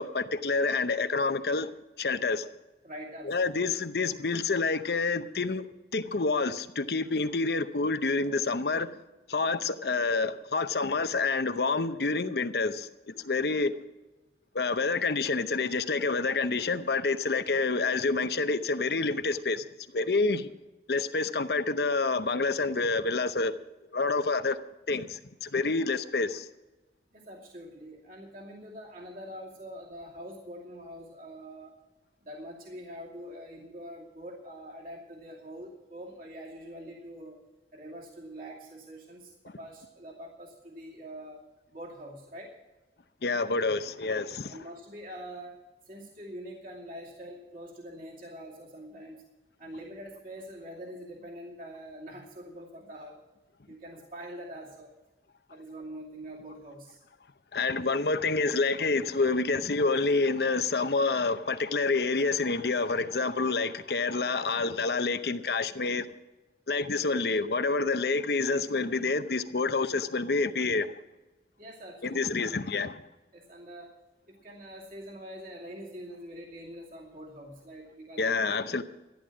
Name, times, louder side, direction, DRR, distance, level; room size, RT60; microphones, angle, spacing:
voice 1, 0.0-1.7 2.0-2.5 3.2-5.7 5.9-8.9 9.3-13.7 14.5-19.7 19.9-20.5 20.9-23.5 23.9-24.6 24.9-26.5 43.2-44.6 57.5-66.1 66.7-70.9 72.0-73.0 78.2-78.8, left 3 dB, 65° left, 0.8 m, -28 dB
voice 2, 2.8-3.4 27.1-31.7 32.2-37.4 37.7-41.4 41.7-42.6 44.5-49.2 49.6-53.2 53.7-54.9 55.5-57.0 71.6-72.2 73.3-74.0 74.3-78.4, equal, 50° right, 2.5 m, -44 dB
13.5 x 10.0 x 6.1 m
head